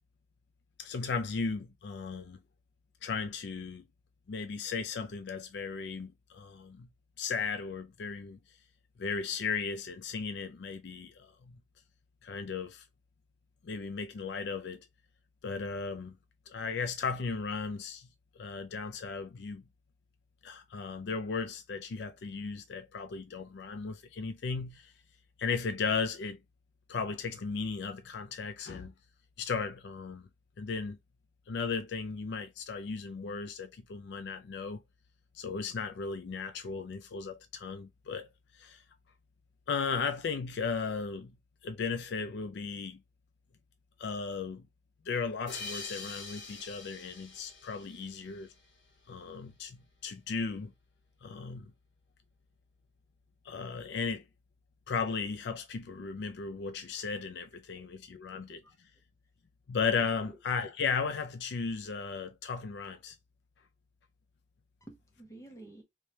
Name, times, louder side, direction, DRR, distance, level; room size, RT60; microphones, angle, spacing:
voice 1, 0.8-2.4 3.0-3.8 4.3-6.9 7.2-8.4 9.0-11.6 12.2-12.8 13.6-14.9 15.4-16.1 16.5-18.1 18.4-19.6 20.4-24.9 25.4-26.4 26.9-28.9 29.4-30.3 30.6-31.0 31.5-34.8 35.3-38.8 39.7-41.3 41.6-43.0 44.0-44.7 45.1-48.5 49.1-50.7 51.2-51.7 53.4-54.2 54.9-58.6 59.7-63.2, left 5 dB, 65° left, 0.4 m, -36 dB
sound 1, 45.5-48.8, left 4 dB, 85° left, 1.7 m, -45 dB
voice 2, 57.7-58.8 60.2-60.3 64.8-65.8, right 2 dB, 15° left, 0.9 m, -53 dB
3.2 x 3.1 x 2.8 m
head